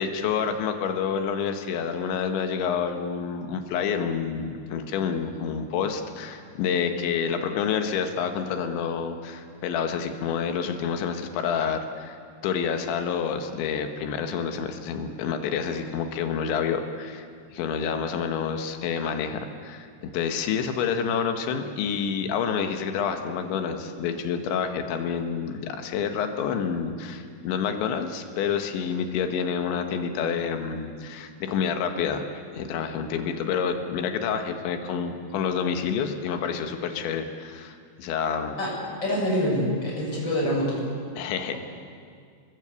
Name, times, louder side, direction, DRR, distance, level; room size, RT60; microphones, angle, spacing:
voice 1, 0.0-12.2 12.4-17.3 17.5-38.5 41.2-41.5, left 7 dB, 80° left, 6 dB, 3.8 m, -28 dB
voice 2, 39.0-40.8, equal, 25° left, -5 dB, 8.2 m, -25 dB
26.5 x 20.0 x 8.3 m, 2.1 s
omnidirectional pair, 5.3 m